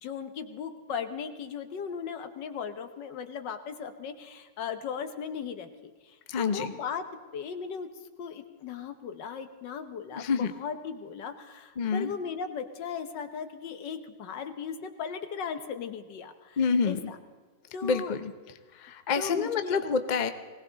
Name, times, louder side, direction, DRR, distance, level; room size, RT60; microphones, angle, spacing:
voice 1, 0.0-7.0 7.3-7.9 8.2-16.6 16.8-17.2 17.7-18.2 19.2-19.8, left 6 dB, 80° left, 8 dB, 1.7 m, -37 dB
voice 2, 6.3-6.7 10.2-10.5 11.8-12.1 16.6-17.0 17.8-18.3 18.8-20.3, left 5 dB, 45° left, 9 dB, 0.5 m, -27 dB
20.0 x 17.5 x 4.0 m, 1.4 s
omnidirectional pair, 1.9 m